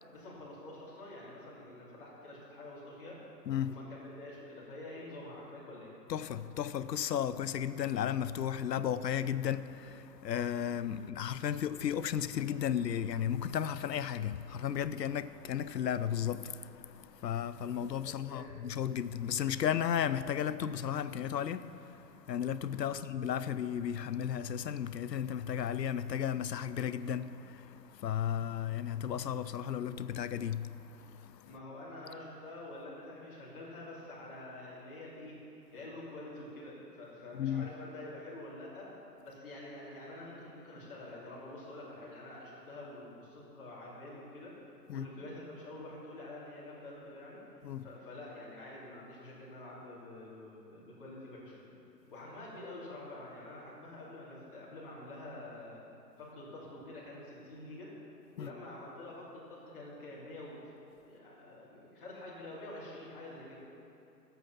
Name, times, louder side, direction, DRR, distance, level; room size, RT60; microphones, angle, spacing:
voice 1, 0.1-3.2 3.6-5.9 10.9-11.1 18.0-18.5 22.9-23.0 31.4-38.9 39.2-47.4 47.8-51.7 52.1-55.8 56.2-57.9 58.3-60.7 61.0-63.6, left 1 dB, 30° left, 2.7 m, -47 dB
voice 2, 6.1-31.5 37.3-37.7 44.9-45.1 47.6-47.9 58.4-58.5, left 9 dB, 75° left, 0.6 m, -34 dB
13.0 x 8.3 x 5.9 m
hypercardioid pair, 175°, 50 cm